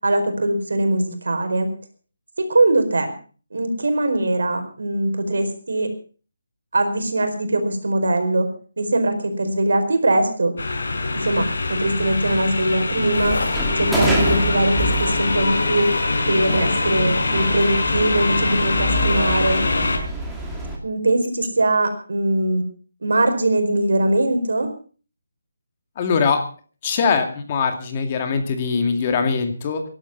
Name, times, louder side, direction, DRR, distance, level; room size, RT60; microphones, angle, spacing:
voice 1, 0.0-1.7 2.5-3.1 3.5-5.9 6.7-8.5 8.8-10.5 11.1-13.4 13.8-15.9 16.3-19.6 20.8-22.7 23.0-24.7, right 1 dB, 80° right, 6 dB, 4.6 m, -21 dB
sound 1, 10.6-20.0, left 3 dB, 70° left, 4.8 m, -23 dB
sound 2, 13.1-18.1, left 2 dB, 90° left, 7.6 m, -36 dB
sound 3, 13.2-20.8, right 1 dB, ahead, 2.3 m, -28 dB
voice 2, 26.0-26.4 26.8-29.8, left 5 dB, 30° left, 6 dB, 2.2 m, -22 dB
17.5 x 11.5 x 5.4 m, 0.40 s
hypercardioid pair, 165°, 0 cm